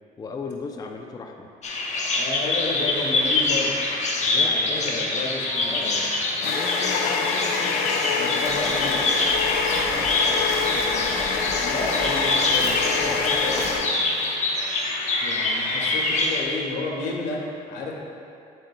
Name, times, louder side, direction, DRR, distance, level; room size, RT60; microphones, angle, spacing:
voice 1, 0.2-1.5 4.2-5.2 5.6-6.1 6.4-8.4 8.8-11.7, left 4 dB, 20° left, 2 dB, 0.5 m, -38 dB
Bird vocalization bird call bird song, 1.6-16.4, left 2 dB, 45° left, 1.1 m, -25 dB
voice 2, 2.1-3.7 4.2-6.1 8.1-9.0 11.6-13.7 15.2-17.9, left 3 dB, 85° left, -2 dB, 1.4 m, -31 dB
sound 1, 5.6-14.3, left 5 dB, 70° left, 0.7 m, -26 dB
Livestock farm animals working animals, 8.4-13.8, right 1 dB, 40° right, 1.3 m, -36 dB
9.2 x 7.6 x 2.3 m, 2.5 s
cardioid pair, 110°, 17 cm